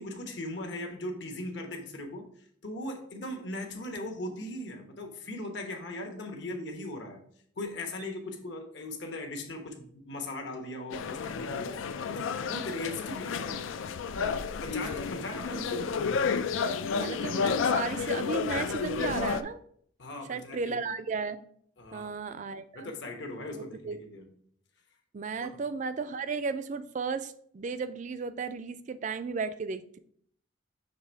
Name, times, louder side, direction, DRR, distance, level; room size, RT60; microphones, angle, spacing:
voice 1, 0.0-7.2 7.6-11.7 12.1-13.7 14.6-16.0 20.0-20.8 21.8-22.1 22.7-24.3 25.4-25.6, left 1 dB, 60° left, 3 dB, 1.1 m, -39 dB
sound 1, 10.9-19.4, left 5 dB, 80° left, 0.4 m, -31 dB
voice 2, 15.5-15.9 17.0-19.6 20.3-21.4 21.9-22.9 23.5-24.0 25.1-30.0, right 4 dB, 40° right, 12 dB, 0.3 m, -34 dB
6.7 x 3.4 x 4.4 m, 0.62 s
head